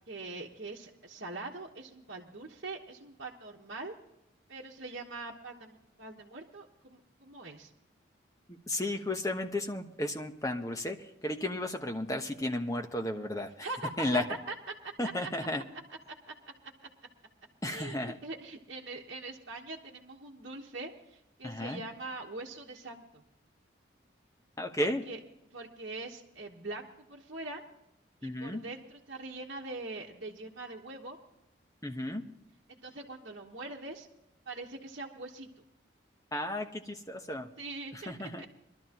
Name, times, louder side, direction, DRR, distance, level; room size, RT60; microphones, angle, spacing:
voice 1, 0.1-4.0 4.5-7.7 13.6-14.2 14.5-14.6 14.8-15.3 16.1-16.3 17.7-23.2 24.8-25.2 25.5-27.6 28.2-31.2 32.7-34.1 34.4-35.5 37.6-38.5, right 2 dB, 55° right, -4 dB, 1.3 m, -43 dB
voice 2, 8.5-13.7 14.0-14.3 15.0-15.6 17.6-18.2 21.4-21.8 24.6-25.0 28.2-28.6 31.8-32.2 36.3-37.5 37.9-38.4, left 1 dB, 15° left, 5 dB, 1.1 m, -33 dB
22.5 x 12.5 x 3.0 m, 0.86 s
head